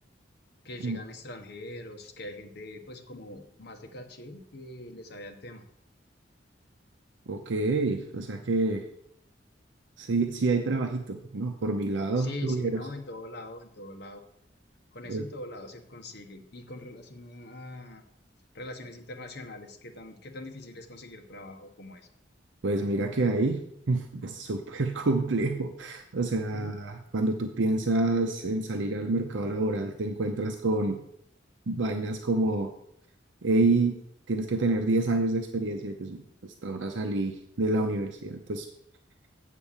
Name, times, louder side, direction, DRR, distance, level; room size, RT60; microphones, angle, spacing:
voice 1, 0.6-5.6 12.2-14.2 14.9-18.0 18.5-22.1 26.5-26.7, left 1 dB, 60° left, 3 dB, 1.1 m, -42 dB
voice 2, 7.3-8.9 10.0-12.8 15.1-15.2 22.6-31.0 31.7-32.7 33.4-38.7, right 2 dB, 70° right, 4 dB, 0.7 m, -28 dB
8.4 x 4.4 x 7.3 m, 0.73 s
head